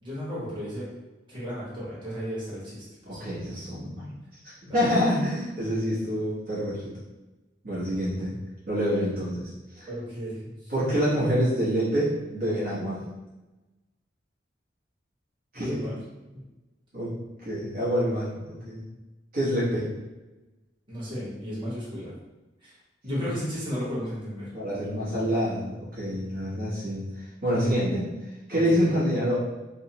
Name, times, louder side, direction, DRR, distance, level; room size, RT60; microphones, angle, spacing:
voice 1, 0.0-0.9 1.3-3.2 3.5-3.6 4.6-4.8 9.9-10.7 15.5-15.9 16.3-16.4 20.9-22.1 22.6-22.8 23.0-24.5 27.5-27.7 28.5-28.9, equal, 25° right, -9 dB, 1.1 m, -34 dB
voice 2, 3.0-4.0 4.4-6.9 7.6-8.3 8.7-9.9 10.7-13.0 15.5-15.8 16.9-17.1 17.4-18.9 19.3-19.9 23.1-23.2 24.5-28.1 28.5-29.3, equal, 55° right, -9 dB, 1.0 m, -27 dB
3.1 x 2.0 x 2.8 m, 1.1 s
head